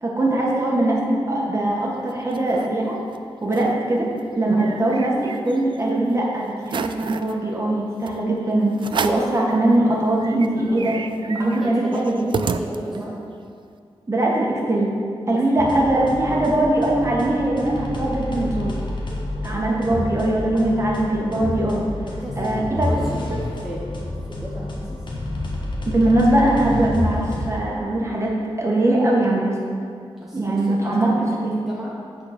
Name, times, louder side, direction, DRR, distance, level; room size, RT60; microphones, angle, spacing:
voice 1, 0.0-2.9 3.4-4.1 4.4-11.0 11.3-12.2 12.9-13.0 14.1-14.9 15.3-18.8 19.4-21.8 22.4-22.9 23.3-23.4 25.8-29.6 30.3-31.5, right 1 dB, 30° right, -3 dB, 1.6 m, -21 dB
sound 1, 1.9-2.7 3.1-3.2 3.4-3.8 4.2-5.8 6.2-6.3 6.6-7.3 8.1-8.2 8.8-9.4 9.8-9.9 10.2-13.2, right 5 dB, 55° right, 0.3 m, -30 dB
voice 2, 10.7-11.0 11.6-13.2 15.3-15.4 16.3-16.6 19.9-20.2 22.0-23.3 23.6-25.0 30.2-32.0, equal, 5° right, -6 dB, 1.0 m, -35 dB
sound 2, 15.6-27.5, left 1 dB, 50° left, 1.3 m, -29 dB
8.4 x 4.4 x 6.1 m, 2.3 s
wide cardioid pair, 100°, 10 cm